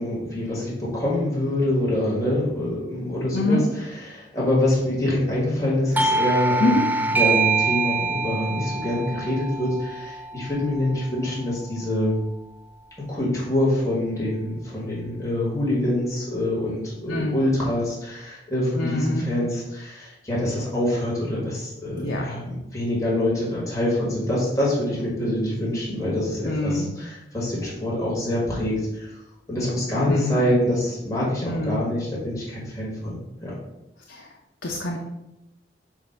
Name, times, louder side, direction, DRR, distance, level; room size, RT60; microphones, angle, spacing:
voice 1, 0.0-12.2 13.1-29.2 29.5-33.5, left 1 dB, 20° left, -6 dB, 1.8 m, -25 dB
Doorbell, 6.0-11.2, right 3 dB, 10° right, 0.3 m, -25 dB
voice 2, 18.8-19.3 22.0-22.2 26.4-26.9 30.1-30.4 31.4-31.8 34.1-34.2 34.6-35.0, left 1 dB, 80° left, 0 dB, 0.7 m, -24 dB
7.3 x 2.6 x 5.1 m, 0.91 s
head